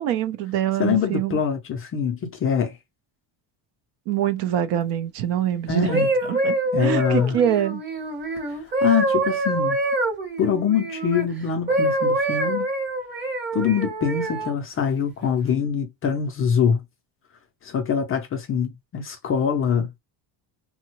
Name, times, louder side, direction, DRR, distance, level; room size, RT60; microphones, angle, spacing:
voice 1, 0.0-1.4 4.1-7.8, right 10 dB, 60° right, 0.5 m, -25 dB
voice 2, 0.8-2.8 5.7-6.1 6.7-7.4 8.5-9.8 10.4-12.7 13.5-16.8 17.6-19.9, left 7 dB, 30° left, 0.4 m, -24 dB
sound 1, 5.7-11.3 11.7-14.6 15.2-15.5, right 2 dB, 25° right, 0.8 m, -25 dB
3.6 x 2.1 x 2.8 m
cardioid pair, 165°, 47 cm